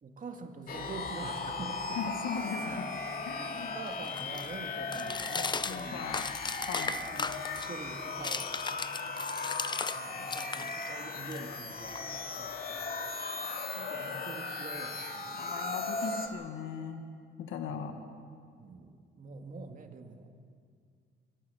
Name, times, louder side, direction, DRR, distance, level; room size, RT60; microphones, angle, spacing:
voice 1, 0.0-2.1 2.6-6.1 7.1-7.4 7.6-8.5 9.9-12.0 12.4-13.0 13.3-15.3 15.7-16.0 17.7-17.9 18.6-20.3, right 4 dB, 40° right, 4 dB, 2.4 m, -46 dB
sound 1, 0.7-16.3, left 3 dB, 50° left, 2.4 m, -37 dB
voice 2, 2.0-2.9 3.3-3.8 5.7-6.3 6.6-7.1 13.8-14.2 15.4-17.1 17.4-18.0, left 6 dB, 85° left, 6 dB, 1.6 m, -39 dB
sound 2, 2.6-10.0 10.3-12.5, left 4 dB, 20° left, 0.6 m, -38 dB
24.5 x 17.0 x 7.3 m, 2.2 s
cardioid pair, 90°, 20 cm